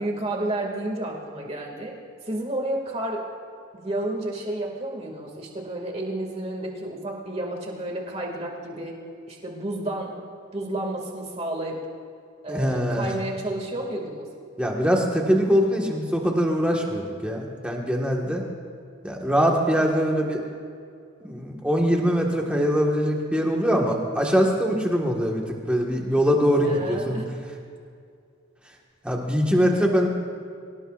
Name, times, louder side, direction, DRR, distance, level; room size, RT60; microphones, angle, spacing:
voice 1, 0.0-1.9 2.2-3.2 3.7-8.9 9.3-10.1 10.5-11.8 12.4-14.3 26.6-27.3, right 1 dB, 30° right, 0 dB, 2.2 m, -31 dB
voice 2, 12.5-13.1 14.6-18.4 19.0-20.4 21.2-25.4 25.7-27.2 29.0-30.1, equal, 5° right, -1 dB, 1.6 m, -22 dB
24.0 x 18.0 x 2.5 m, 2.3 s
head